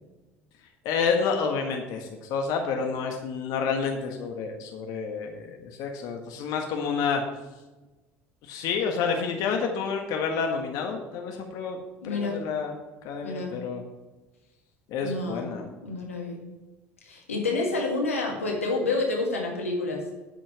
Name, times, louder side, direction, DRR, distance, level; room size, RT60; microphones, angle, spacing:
voice 1, 0.8-7.2 8.5-11.8 12.0-12.7 13.0-13.8 14.9-15.7, left 5 dB, 60° left, 3 dB, 1.5 m, -29 dB
voice 2, 12.0-12.4 13.2-13.5 15.0-15.5 15.8-16.4 17.0-20.0, left 3 dB, 85° left, 1 dB, 1.8 m, -28 dB
9.3 x 6.2 x 7.3 m, 1.1 s
hypercardioid pair, 65°, 7 cm